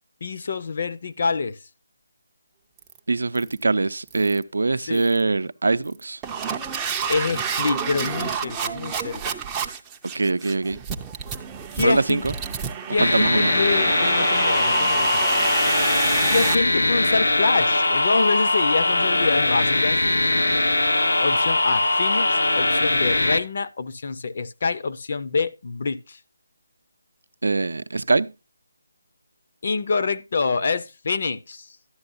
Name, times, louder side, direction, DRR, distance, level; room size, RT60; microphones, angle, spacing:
voice 1, 0.2-1.6 4.8-5.0 7.1-9.4 11.8-12.2 12.9-15.2 16.3-20.0 21.2-26.2 29.6-31.8, left 4 dB, 40° left, 0.6 m, -26 dB
sound 1, 2.8-3.0 3.3-3.6 4.1-4.4 4.9-5.2 5.8-16.5, right 6 dB, 10° right, 0.4 m, -29 dB
voice 2, 3.1-6.2 10.1-10.8 11.8-12.3 13.0-13.5 27.4-28.3, right 3 dB, 80° right, 0.5 m, -23 dB
sound 2, 13.0-23.4, left 2 dB, 85° left, 1.0 m, -21 dB
11.0 x 8.6 x 2.5 m
hypercardioid pair, 175°, 0 cm